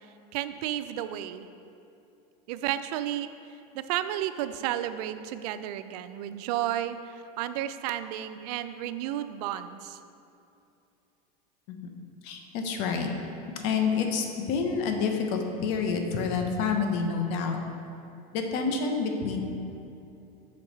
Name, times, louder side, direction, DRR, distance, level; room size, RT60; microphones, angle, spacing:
voice 1, 0.3-1.4 2.5-3.3 3.7-10.0, right 12 dB, 70° right, 11 dB, 0.4 m, -32 dB
voice 2, 12.2-13.1 13.6-17.6 18.3-19.4, left 5 dB, 60° left, 4 dB, 0.9 m, -28 dB
7.1 x 5.3 x 4.0 m, 2.7 s
supercardioid pair, 130°, 21 cm